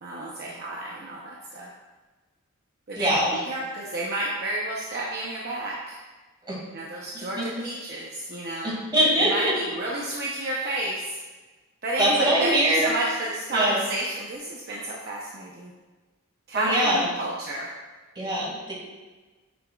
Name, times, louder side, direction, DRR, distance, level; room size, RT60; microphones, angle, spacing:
voice 1, 0.0-1.7 2.9-6.0 6.7-8.7 9.1-11.0 11.8-15.7 16.5-17.7, right 1 dB, 50° right, -4 dB, 0.7 m, -31 dB
voice 2, 3.0-3.3 6.5-6.6 7.1-7.4 8.6-9.5 12.0-12.9 13.5-13.8 16.5-17.0 18.2-18.7, right 1 dB, 20° right, -5 dB, 2.2 m, -23 dB
9.3 x 5.7 x 2.4 m, 1.3 s
head